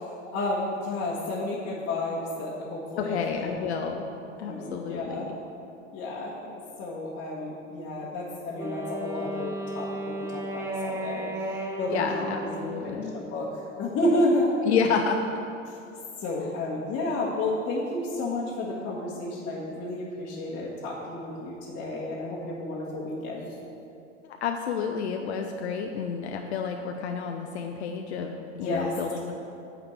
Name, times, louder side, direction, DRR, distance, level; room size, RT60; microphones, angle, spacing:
voice 1, 0.3-3.6 4.5-5.3 5.9-11.3 11.8-12.5 12.8-13.5 13.8-14.5 16.2-23.5 28.6-28.9, left 1 dB, 30° left, -6 dB, 1.4 m, -31 dB
voice 2, 3.0-4.1 4.4-5.3 11.9-13.1 14.6-15.2 24.4-29.4, left 6 dB, 60° left, 3 dB, 0.7 m, -30 dB
Wind instrument woodwind instrument, 8.6-13.6, right 1 dB, 5° right, 0.6 m, -35 dB
8.9 x 5.0 x 7.7 m, 2.7 s
figure-of-eight pair, 90°, 38 cm